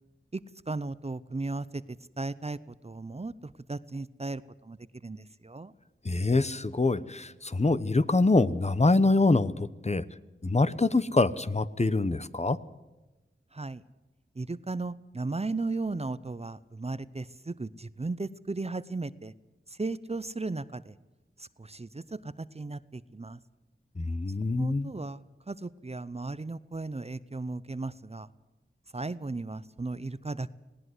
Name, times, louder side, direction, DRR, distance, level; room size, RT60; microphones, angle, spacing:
voice 1, 0.3-4.8 5.0-5.7 13.5-13.8 14.4-19.3 19.7-21.0 21.4-23.4 24.6-28.3 28.9-30.5, right 3 dB, 30° right, 17 dB, 0.7 m, -36 dB
voice 2, 6.0-10.0 10.4-12.6 24.0-24.9, left 3 dB, 30° left, 15 dB, 0.9 m, -25 dB
19.0 x 17.5 x 7.9 m, 1.1 s
wide cardioid pair, 75°, 21 cm